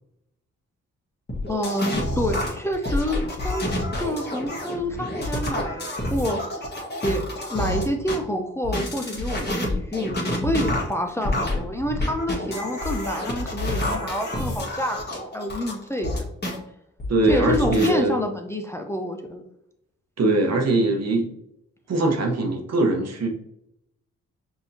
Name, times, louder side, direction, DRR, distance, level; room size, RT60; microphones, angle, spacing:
sound 1, 1.3-8.2 8.6-16.6 17.0-17.9, left 1 dB, 30° left, 1.5 m, -28 dB
voice 1, 1.5-3.7 4.0-6.6 7.0-7.2 7.5-16.1 17.2-19.5, left 1 dB, 10° left, 3 dB, 0.6 m, -28 dB
voice 2, 17.1-18.2 20.2-21.3 21.9-23.3, right 2 dB, 55° right, 1 dB, 1.1 m, -21 dB
5.5 x 2.8 x 2.7 m, 0.80 s
supercardioid pair, 45°, 31 cm